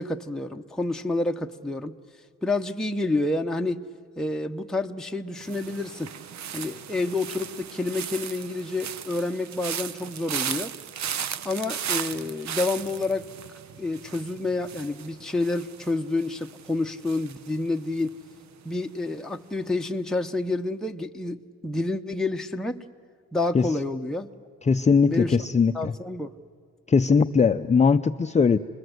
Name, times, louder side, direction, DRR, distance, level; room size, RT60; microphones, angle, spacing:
voice 1, 0.0-2.0 2.4-3.9 4.2-6.1 6.5-10.7 11.4-13.3 13.8-18.2 18.6-22.8 23.3-24.3 25.1-25.4 25.7-26.3, left 2 dB, ahead, 3 dB, 0.9 m, -29 dB
sound 1, 5.4-18.4 18.7-19.2, right 9 dB, 65° right, 0.9 m, -36 dB
voice 2, 24.6-25.9 26.9-28.6, left 5 dB, 25° left, 7 dB, 0.6 m, -20 dB
28.0 x 21.0 x 7.9 m, 2.1 s
cardioid pair, 90°, 30 cm